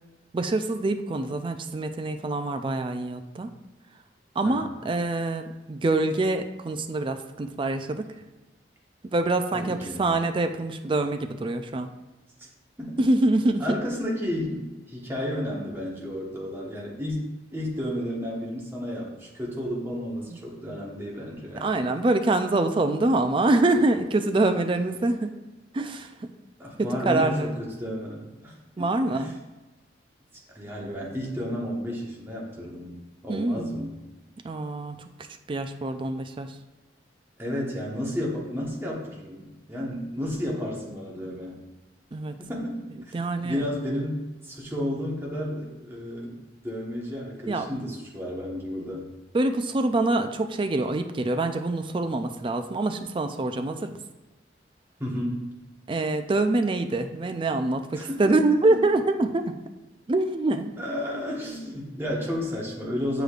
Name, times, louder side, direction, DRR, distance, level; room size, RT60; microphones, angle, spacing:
voice 1, 0.3-3.5 4.4-8.1 9.0-11.9 13.0-13.6 20.3-20.4 21.6-25.3 25.7-26.1 26.8-27.5 28.8-29.3 33.3-33.9 34.4-35.0 35.5-36.5 42.1-42.3 43.1-43.6 47.5-47.7 49.3-54.0 55.9-59.5 60.1-60.7, right 2 dB, 30° right, 7 dB, 0.4 m, -25 dB
voice 2, 9.5-10.1 12.8-12.9 13.6-21.7 26.6-29.3 30.5-32.9 33.2-34.0 37.4-41.6 42.4-43.1 43.4-46.4 46.6-49.1 55.0-55.5 58.0-58.4 60.8-63.2, equal, 15° right, -4 dB, 1.2 m, -32 dB
7.8 x 5.0 x 2.4 m, 1.1 s
head